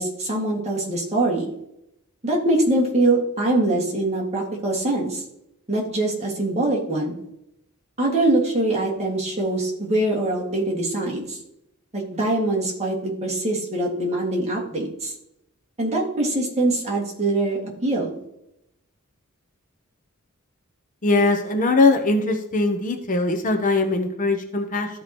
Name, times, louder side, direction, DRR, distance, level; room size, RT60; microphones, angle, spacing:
voice 1, 0.0-1.5 2.2-5.2 5.7-7.2 8.0-11.4 11.9-15.1 15.8-18.2, right 2 dB, 30° right, -2 dB, 2.0 m, -23 dB
voice 2, 21.0-24.9, left 3 dB, 35° left, 5 dB, 0.8 m, -21 dB
13.5 x 4.7 x 2.9 m, 0.81 s
head